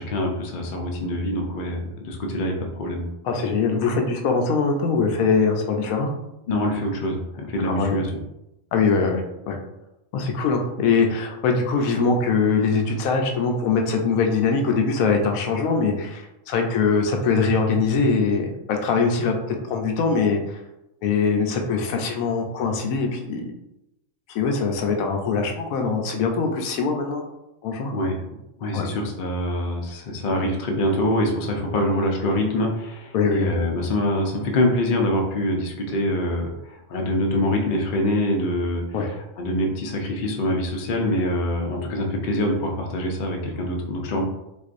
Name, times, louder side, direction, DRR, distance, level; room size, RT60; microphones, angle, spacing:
voice 1, 0.0-3.0 6.5-8.1 27.9-28.1 28.6-44.2, left 1 dB, 55° left, 1 dB, 0.6 m, -25 dB
voice 2, 3.2-6.1 7.6-7.9 8.7-9.2 9.5-9.6 10.1-20.6 21.0-23.4 24.3-27.2 27.6-27.9 28.7-28.9 33.1-33.5 38.9-39.1, left 4 dB, 85° left, 2 dB, 1.0 m, -22 dB
4.1 x 2.5 x 2.5 m, 0.89 s
omnidirectional pair, 1.4 m